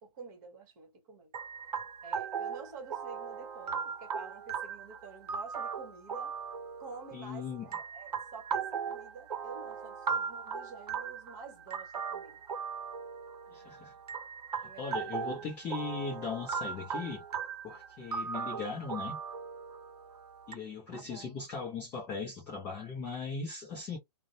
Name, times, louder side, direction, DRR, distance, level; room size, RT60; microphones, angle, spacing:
voice 1, 0.0-1.3 2.0-6.3 6.8-12.4 14.6-15.0 20.9-21.4, right 4 dB, 30° right, 1.0 m, -49 dB
sound 1, 1.3-20.5, right 6 dB, 75° right, 0.6 m, -38 dB
voice 2, 7.1-7.7 13.5-13.9 14.6-17.2 17.6-19.2 20.5-24.0, left 5 dB, 10° left, 0.4 m, -38 dB
2.6 x 2.0 x 2.6 m
hypercardioid pair, 150°, 20 cm